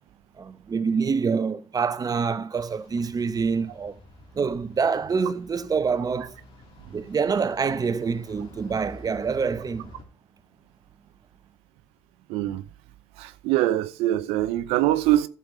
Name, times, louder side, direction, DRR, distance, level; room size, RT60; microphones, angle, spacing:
voice 1, 0.4-3.9 4.3-6.3 6.9-9.9, right 5 dB, 40° right, 1.0 m, -26 dB
sound 1, 2.5-10.0, left 1 dB, 75° left, 4.3 m, -49 dB
voice 2, 12.3-12.6 13.2-15.3, right 14 dB, 85° right, 0.7 m, -23 dB
10.5 x 7.1 x 4.8 m
supercardioid pair, 60°, 10 cm